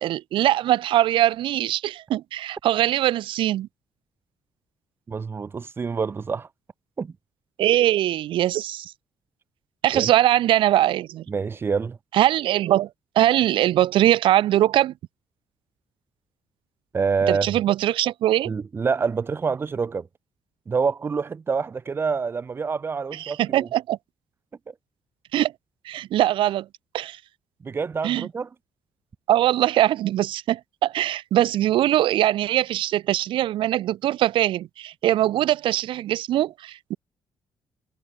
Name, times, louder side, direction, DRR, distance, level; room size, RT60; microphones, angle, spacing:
voice 1, 0.0-3.7 7.6-8.9 9.8-11.2 12.1-12.9 13.2-14.9 17.3-18.5 23.1-24.0 25.3-25.5 25.8-26.7 26.9-27.2 28.0-28.3 29.3-37.0, right 13 dB, 80° right, 1.0 m, -21 dB
voice 2, 5.1-6.5 7.0-7.1 9.9-10.1 11.3-12.0 16.9-17.6 18.5-20.1 20.7-23.7 27.6-28.5, right 5 dB, 25° right, 2.0 m, -26 dB
cardioid pair, 170°, 9 cm